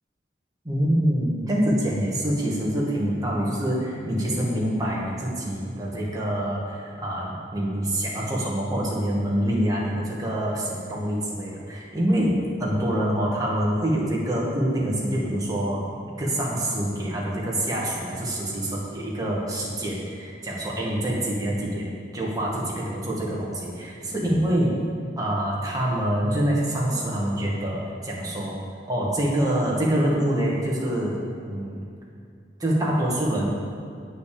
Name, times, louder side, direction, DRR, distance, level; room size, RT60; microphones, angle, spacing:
voice 1, 0.6-24.7 25.2-28.6 28.9-31.8 32.6-33.5, right 1 dB, 20° right, -5 dB, 2.1 m, -26 dB
9.1 x 6.8 x 6.9 m, 2.3 s
head